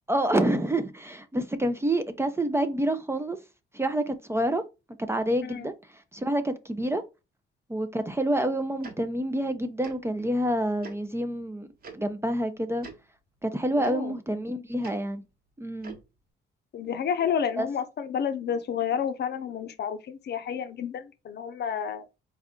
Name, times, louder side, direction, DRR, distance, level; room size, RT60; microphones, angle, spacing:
voice 1, 0.1-3.4 3.7-4.6 5.0-5.7 6.1-7.0 7.7-11.7 11.9-12.9 13.4-15.2 15.6-16.0 17.6-17.7, right 1 dB, 15° right, 0.5 m, -27 dB
Tick-tock, 8.8-8.9 9.8-10.0 10.8-11.0 11.8-11.9 12.8-13.0 13.8-13.9 14.8-14.9 15.8-16.0, right 4 dB, 50° right, 1.1 m, -42 dB
voice 2, 13.8-14.1 16.7-22.0, left 7 dB, 55° left, 0.6 m, -30 dB
4.2 x 2.4 x 3.6 m
cardioid pair, 90°, 20 cm